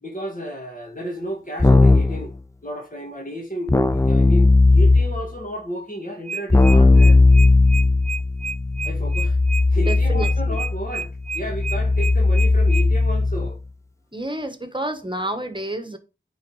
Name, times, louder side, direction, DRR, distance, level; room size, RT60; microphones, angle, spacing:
voice 1, 0.0-2.4 2.6-7.2 8.8-9.4 9.7-11.1 11.3-13.6, equal, 40° left, 2.0 m, -32 dB
Keyboard (musical), 1.6-2.2 3.7-5.3 6.5-13.5, left 3 dB, 15° left, 0.5 m, -17 dB
sound 1, 6.0-12.9, right 5 dB, 40° right, 0.5 m, -30 dB
voice 2, 9.8-10.6 14.1-16.0, right 1 dB, 25° right, 1.4 m, -29 dB
9.5 x 4.0 x 4.9 m
wide cardioid pair, 45°, 20 cm